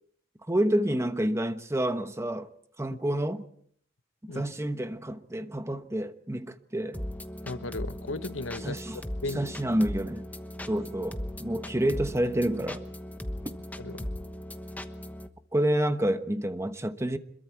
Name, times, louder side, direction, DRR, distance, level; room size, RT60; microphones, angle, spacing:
voice 1, 0.5-2.5 2.8-3.4 4.2-7.0 8.6-9.0 9.3-10.3 10.7-12.8 15.5-17.2, right 1 dB, 15° right, 9 dB, 1.1 m, -28 dB
sound 1, 6.9-15.3, left 1 dB, 10° left, 1.1 m, -38 dB
voice 2, 7.4-8.8 9.2-9.5 13.8-14.1, left 2 dB, 80° left, 13 dB, 1.0 m, -35 dB
26.5 x 22.5 x 4.6 m, 0.63 s
head